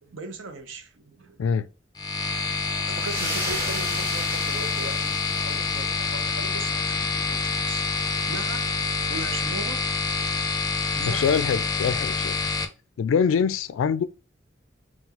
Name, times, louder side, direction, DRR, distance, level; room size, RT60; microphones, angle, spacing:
voice 1, 0.0-1.4 2.9-8.7 9.1-9.8 10.9-11.3, right 2 dB, 80° right, 0.8 m, -39 dB
sound 1, 2.0-12.6, left 4 dB, 20° left, 0.5 m, -27 dB
sound 2, 2.9-6.0, right 1 dB, 15° right, 1.6 m, -34 dB
voice 2, 11.1-12.5 13.0-14.0, left 6 dB, 85° left, 0.3 m, -24 dB
5.7 x 2.3 x 2.8 m
head